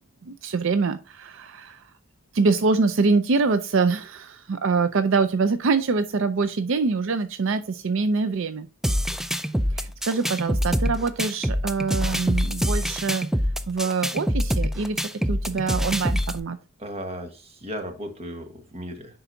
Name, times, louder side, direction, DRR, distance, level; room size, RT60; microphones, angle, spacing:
voice 1, 0.2-1.9 2.3-8.7 9.7-13.3 13.7-16.6, right 4 dB, 65° right, 10 dB, 0.5 m, -24 dB
sound 1, 8.8-16.4, equal, ahead, 0.3 m, -25 dB
voice 2, 9.4-9.8 16.8-19.2, equal, 30° right, 5 dB, 1.3 m, -36 dB
10.0 x 4.0 x 2.6 m, 0.33 s
head